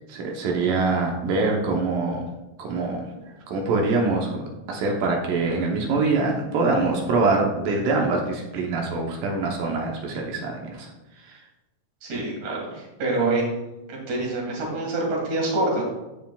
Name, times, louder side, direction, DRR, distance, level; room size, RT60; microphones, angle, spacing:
voice 1, 0.1-2.2 2.6-4.4 4.7-10.9 11.2-11.4 12.1-12.2, right 3 dB, 70° right, 0 dB, 2.4 m, -24 dB
voice 2, 12.0-13.5 13.9-15.8, right 2 dB, 55° right, -1 dB, 3.1 m, -26 dB
14.5 x 5.0 x 2.3 m, 0.99 s
omnidirectional pair, 4.4 m